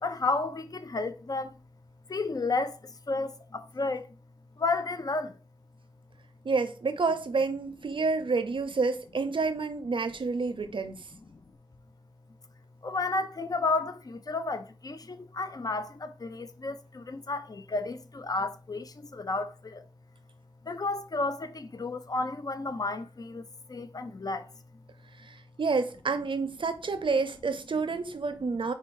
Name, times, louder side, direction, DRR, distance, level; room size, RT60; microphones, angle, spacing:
voice 1, 0.0-1.5 2.1-4.1 4.6-5.4 11.3-11.4 12.8-19.9 20.6-23.4 23.7-24.5, left 3 dB, 50° left, 0.4 m, -32 dB
voice 2, 6.4-11.1 25.2-28.7, right 4 dB, 90° right, 0.5 m, -29 dB
4.3 x 2.3 x 4.6 m
wide cardioid pair, 60°, 8 cm